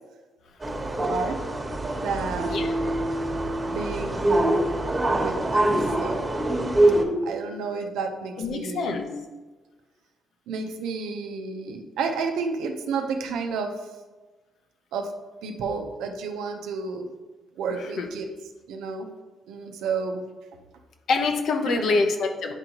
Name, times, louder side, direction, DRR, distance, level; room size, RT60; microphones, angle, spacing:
sound 1, 0.6-7.0, right 1 dB, 15° right, 1.3 m, -24 dB
voice 1, 1.1-1.4 1.9-2.7 3.7-4.3 5.1-5.6 6.0-6.4 7.2-9.0 10.5-13.8 14.9-15.1 15.4-17.1 17.6-18.3 18.7-19.1 19.5-20.2 21.6-22.0, right 5 dB, 90° right, 5 dB, 0.7 m, -31 dB
voice 2, 8.4-9.1 17.7-18.1 21.1-22.5, left 4 dB, 65° left, 5 dB, 0.8 m, -25 dB
9.7 x 3.8 x 2.9 m, 1.2 s
cardioid pair, 90°, 0 cm